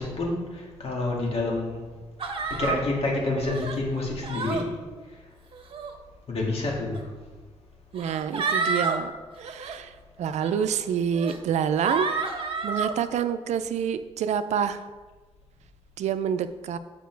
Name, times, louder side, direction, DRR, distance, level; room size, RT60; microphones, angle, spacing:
voice 1, 0.0-1.8 2.2-4.7 5.0-5.3 6.3-7.1, left 2 dB, 60° left, -2 dB, 2.1 m, -28 dB
sound 1, 2.2-2.8 3.4-3.8 4.2-4.6 5.5-5.9 6.9-7.0 8.0-9.0 9.4-9.7 10.4-10.5 11.1-11.4 11.8-12.9, right 4 dB, 50° right, 1.0 m, -29 dB
voice 2, 7.9-9.1 9.4-9.9 10.2-12.1 12.6-14.8 16.0-16.8, right 8 dB, 80° right, 11 dB, 0.4 m, -27 dB
7.2 x 5.1 x 4.6 m, 1.3 s
cardioid pair, 70°, 12 cm